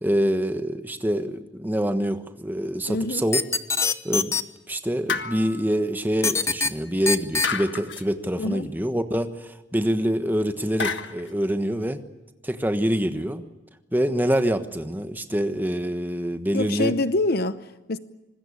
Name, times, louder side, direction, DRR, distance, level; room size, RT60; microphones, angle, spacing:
voice 1, 0.0-3.4 4.0-4.4 4.7-12.0 12.4-13.4 13.9-16.9, equal, 10° right, 1.3 m, -25 dB
voice 2, 2.9-3.2 8.4-8.7 16.5-18.0, left 2 dB, 55° left, 0.8 m, -26 dB
sound 1, 3.3-4.4 6.2-6.7 7.1-7.5, left 4 dB, 15° left, 0.9 m, -22 dB
sound 2, 5.1-5.7 7.4-8.1 10.8-11.3, left 5 dB, 70° left, 1.5 m, -29 dB
25.5 x 20.5 x 8.5 m
head